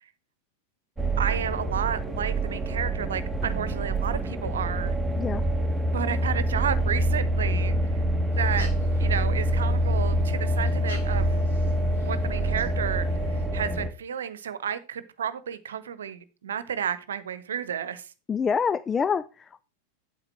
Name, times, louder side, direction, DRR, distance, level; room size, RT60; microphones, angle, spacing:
sound 1, 1.0-13.9, right 1 dB, 5° right, 1.8 m, -26 dB
voice 1, 1.2-4.9 5.9-7.8 8.4-8.7 9.0-11.4 12.0-18.1, right 8 dB, 65° right, 1.0 m, -32 dB
sound 2, 8.3-13.5, left 3 dB, 65° left, 2.3 m, -43 dB
voice 2, 18.3-19.6, left 6 dB, 20° left, 0.4 m, -26 dB
8.9 x 8.3 x 4.5 m
figure-of-eight pair, 90°, 0 cm